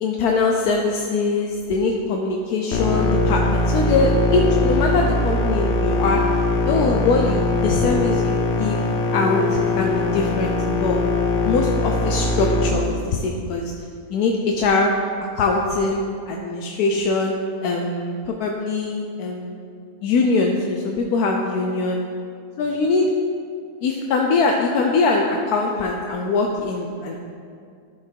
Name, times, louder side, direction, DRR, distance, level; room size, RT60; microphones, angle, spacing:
voice 1, 0.0-6.2 6.7-9.4 9.8-11.0 11.4-13.6 14.1-14.9 15.3-16.0 16.3-17.4 17.6-19.6 20.0-22.0 22.6-23.1 23.8-27.2, left 3 dB, 80° left, 1 dB, 1.1 m, -22 dB
sound 1, 2.7-12.7, left 2 dB, 55° left, 0.9 m, -21 dB
12.0 x 4.8 x 4.5 m, 2.3 s
omnidirectional pair, 1.6 m